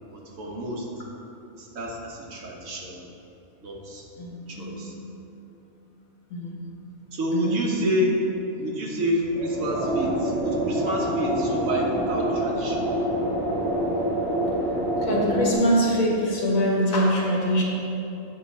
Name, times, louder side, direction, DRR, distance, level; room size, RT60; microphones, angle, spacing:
voice 1, 0.1-0.9 1.5-3.0 3.6-4.0 4.5-4.9 7.1-8.1 8.6-12.9, equal, 70° right, -2 dB, 1.4 m, -29 dB
voice 2, 4.2-4.7 6.3-6.6 7.3-7.9 15.0-17.6, equal, 75° left, -3 dB, 1.7 m, -23 dB
sound 1, 9.3-15.5, right 1 dB, 45° right, 2.1 m, -26 dB
7.5 x 5.6 x 4.1 m, 2.9 s
omnidirectional pair, 1.4 m